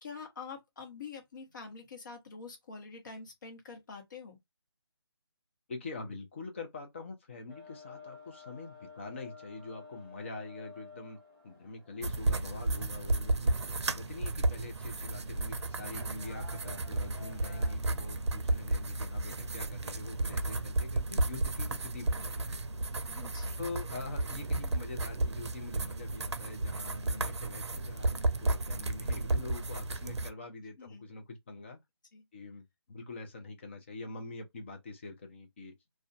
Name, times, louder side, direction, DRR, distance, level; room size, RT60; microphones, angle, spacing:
voice 1, 0.0-4.4 23.1-23.6 30.8-31.0 32.1-32.2, left 5 dB, 45° left, 0.9 m, -46 dB
voice 2, 5.7-11.2 11.4-13.5 13.9-22.6 23.6-31.8 32.3-35.7, left 3 dB, 25° left, 0.5 m, -44 dB
sound 1, 7.5-17.7, left 5 dB, 10° left, 1.1 m, -53 dB
sound 2, 12.0-30.3, right 2 dB, 85° right, 0.5 m, -33 dB
2.4 x 2.2 x 2.4 m
figure-of-eight pair, 160°, 14 cm